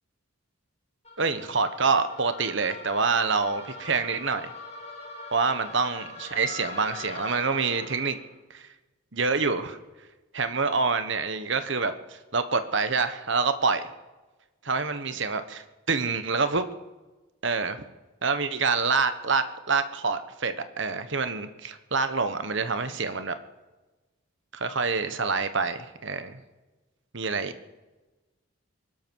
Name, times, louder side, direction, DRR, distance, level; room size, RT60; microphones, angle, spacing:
sound 1, 1.0-8.3, left 3 dB, 30° left, 2.2 m, -42 dB
voice 1, 1.2-4.5 5.3-8.2 8.5-8.7 9.1-9.8 10.3-13.8 14.6-16.7 17.4-17.8 18.2-23.3 24.5-26.4 27.1-27.5, right 4 dB, 55° right, 10 dB, 1.2 m, -27 dB
23.0 x 12.5 x 4.7 m, 1.2 s
head